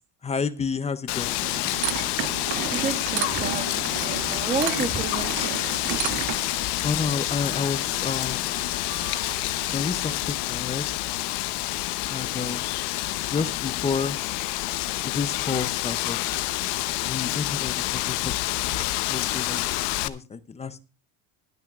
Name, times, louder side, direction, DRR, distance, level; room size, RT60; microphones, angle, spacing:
voice 1, 0.2-1.3 6.8-8.5 9.7-10.9 12.1-12.7 13.3-14.2 15.0-16.2 17.0-18.4 18.6-19.6 20.0-20.8, left 5 dB, 15° left, 14 dB, 0.5 m, -30 dB
Wind, 1.1-20.1, left 17 dB, 70° left, 0.9 m, -28 dB
sound 1, 1.2-6.5, right 15 dB, 50° right, 0.6 m, -32 dB
voice 2, 2.7-5.6, right 4 dB, 20° right, 5 dB, 1.6 m, -31 dB
sound 2, 2.8-9.9, right 10 dB, 85° right, 5.3 m, -46 dB
22.0 x 9.1 x 2.4 m, 0.32 s
cardioid pair, 150°, 44 cm